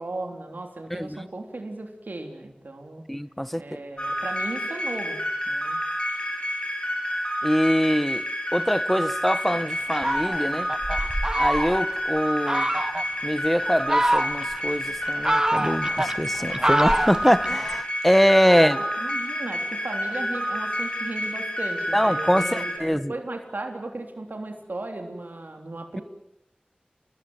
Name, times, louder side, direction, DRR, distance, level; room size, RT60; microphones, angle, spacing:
voice 1, 0.0-3.0 3.5-5.2 5.5-5.8 18.4-26.0, right 2 dB, 90° right, 3.3 m, -36 dB
voice 2, 0.9-1.2 3.1-3.6 7.4-8.2 8.5-10.7 11.3-12.7 13.2-18.8 21.9-23.1, equal, 5° left, 1.1 m, -23 dB
sound 1, 4.0-22.8, equal, 35° left, 7.7 m, -29 dB
Fowl, 9.9-12.0 12.5-13.1 13.7-14.6 15.0-17.8, right 1 dB, 20° right, 1.1 m, -25 dB
28.5 x 20.0 x 7.9 m
wide cardioid pair, 50°, 3 cm